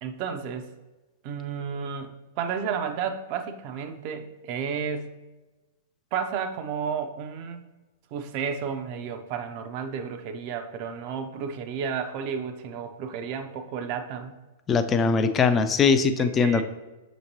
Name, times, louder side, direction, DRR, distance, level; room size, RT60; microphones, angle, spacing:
voice 1, 0.0-0.7 1.2-5.2 6.1-7.7 8.1-14.3 16.2-16.6, right 7 dB, 45° right, 7 dB, 0.5 m, -32 dB
voice 2, 14.7-16.6, left 5 dB, 20° left, 9 dB, 0.3 m, -21 dB
6.3 x 3.0 x 2.8 m, 1.1 s
figure-of-eight pair, 105°, 0 cm